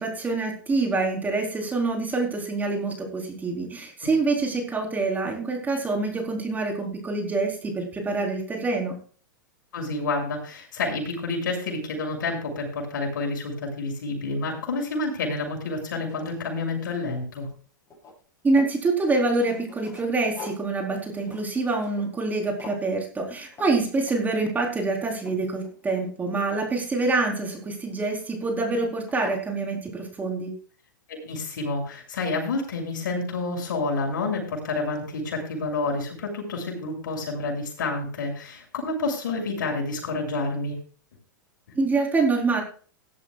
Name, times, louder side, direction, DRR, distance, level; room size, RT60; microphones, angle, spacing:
voice 1, 0.0-9.0 18.4-30.5 41.8-42.6, right 3 dB, 15° right, 1 dB, 4.0 m, -26 dB
voice 2, 9.7-17.5 31.1-40.8 41.7-41.8, left 3 dB, 70° left, 1 dB, 6.9 m, -29 dB
sound 1, 15.8-17.2 17.5-18.8 19.3-22.3 22.6-22.9 23.5-23.7 24.0-24.4 24.8-26.4 27.9-28.3 28.7-28.8 29.1-29.5, left 3 dB, 25° left, 7.9 m, -44 dB
19.0 x 12.0 x 2.4 m, 0.41 s
hypercardioid pair, 110°, 11 cm